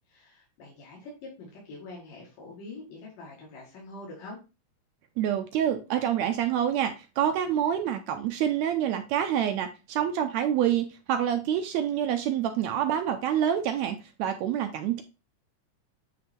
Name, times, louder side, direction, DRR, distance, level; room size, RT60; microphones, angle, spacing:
voice 1, 0.1-4.4, left 2 dB, 85° left, -4 dB, 3.6 m, -44 dB
voice 2, 5.2-15.0, right 10 dB, 80° right, 7 dB, 1.6 m, -27 dB
9.2 x 3.4 x 4.3 m, 0.30 s
omnidirectional pair, 3.7 m